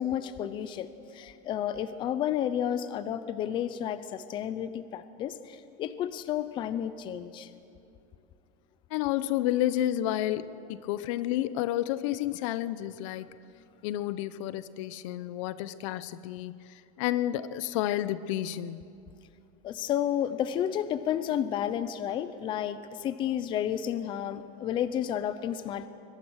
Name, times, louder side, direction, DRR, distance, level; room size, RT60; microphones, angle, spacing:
voice 1, 0.0-7.5 19.6-25.9, left 10 dB, 25° left, 13 dB, 0.7 m, -31 dB
voice 2, 8.9-13.3 13.8-18.9, left 13 dB, 60° left, 16 dB, 0.7 m, -30 dB
22.0 x 21.0 x 6.4 m, 2.5 s
supercardioid pair, 175°, 19 cm